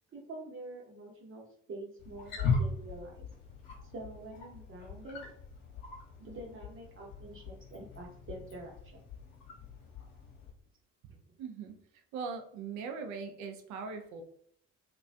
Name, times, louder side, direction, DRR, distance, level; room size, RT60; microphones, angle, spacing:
voice 1, 0.1-3.3 3.9-5.2 6.2-9.0, right 2 dB, 35° right, -1 dB, 0.9 m, -46 dB
Wild animals, 2.0-10.5, left 4 dB, 60° left, 0.9 m, -39 dB
voice 2, 11.4-11.7 12.1-14.2, right 5 dB, 50° right, 5 dB, 0.5 m, -40 dB
2.3 x 2.3 x 2.3 m, 0.64 s
figure-of-eight pair, 45°, 38 cm